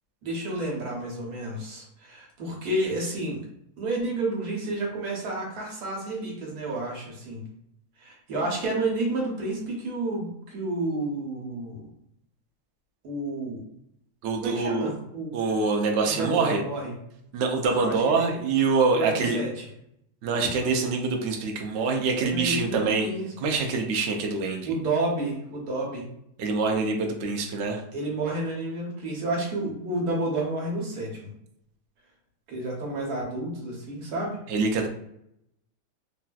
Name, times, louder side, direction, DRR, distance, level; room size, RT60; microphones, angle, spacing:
voice 1, 0.2-3.4 3.8-7.5 8.0-11.9 13.0-13.6 14.3-15.3 16.0-16.9 17.7-18.4 18.9-19.6 22.1-23.3 24.6-26.1 27.9-31.3 32.5-34.4, right 2 dB, 85° right, -2 dB, 1.5 m, -30 dB
voice 2, 14.2-14.9 15.3-16.6 17.3-19.4 20.2-23.1 23.4-24.7 26.4-27.8 34.5-34.9, right 4 dB, 65° right, 2 dB, 0.7 m, -25 dB
3.2 x 2.6 x 2.3 m, 0.75 s
omnidirectional pair, 1.6 m